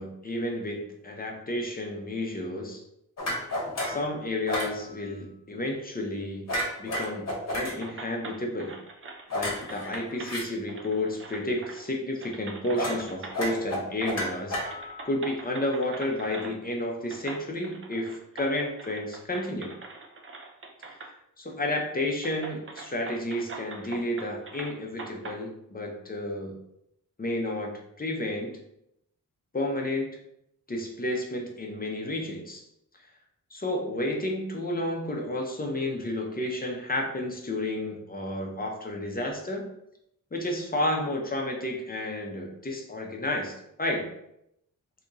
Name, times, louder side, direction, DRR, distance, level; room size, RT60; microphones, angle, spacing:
voice 1, 0.0-2.8 3.8-6.5 6.8-7.3 7.5-8.8 9.3-14.6 15.0-19.8 20.8-26.5 27.2-28.6 29.5-30.2 30.7-32.6 33.5-39.6 40.3-44.1, left 1 dB, 25° left, 1 dB, 0.6 m, -31 dB
sound 1, 3.2-4.1 4.5-4.7 6.5-7.7 9.3-10.4 12.8-13.0 13.3-15.1, left 1 dB, 50° left, 1.0 m, -31 dB
sound 2, 7.8-10.3 10.7-11.9 12.2-13.6 14.0-14.4 14.6-16.6 17.1-21.1 21.5-21.6 22.2-25.4, right 3 dB, 40° right, 0.5 m, -43 dB
3.4 x 2.8 x 2.6 m, 0.78 s
wide cardioid pair, 85°, 34 cm